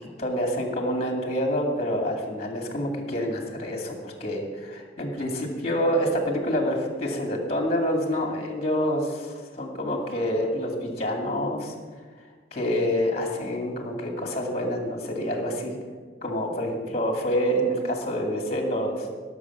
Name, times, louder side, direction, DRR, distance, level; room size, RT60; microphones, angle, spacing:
voice 1, 0.2-11.7 12.5-15.8 16.2-19.1, equal, 35° left, 1 dB, 2.1 m, -27 dB
17.0 x 6.8 x 6.0 m, 1.5 s
head